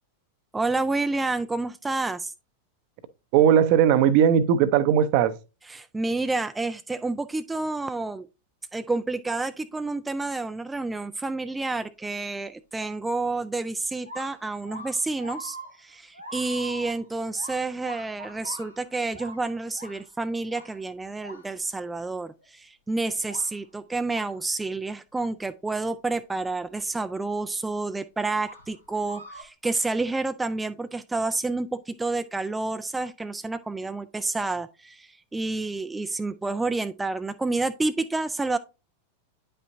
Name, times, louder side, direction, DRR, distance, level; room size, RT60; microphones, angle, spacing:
voice 1, 0.5-2.3 5.6-8.3 8.7-38.6, right 3 dB, 10° right, 0.3 m, -29 dB
voice 2, 3.3-5.3, right 9 dB, 45° right, 0.6 m, -18 dB
sound 1, 13.8-21.8 22.4-22.5 23.2-23.6 24.1-24.4 26.8-26.9 28.4-29.4, equal, 90° left, 1.4 m, -43 dB
9.4 x 5.5 x 2.6 m
figure-of-eight pair, 90°, 0 cm